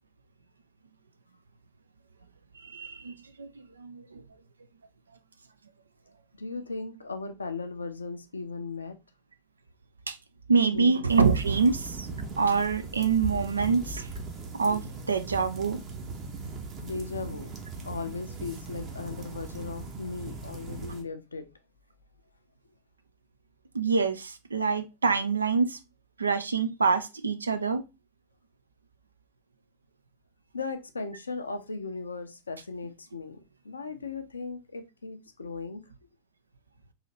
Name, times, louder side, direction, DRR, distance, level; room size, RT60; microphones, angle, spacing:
voice 1, 2.6-4.2 10.1-10.2 10.5-12.1 12.4-14.1 14.6-15.8 23.7-25.8 26.2-27.8, right 5 dB, 75° right, 0.4 m, -26 dB
voice 2, 6.4-9.0 10.7-10.9 16.8-17.5 17.8-21.5 30.5-33.4 33.6-35.8, left 4 dB, 75° left, 0.5 m, -37 dB
sound 1, 11.1-21.0, right 3 dB, 30° right, 0.8 m, -39 dB
3.9 x 2.7 x 3.0 m
figure-of-eight pair, 90°, 0 cm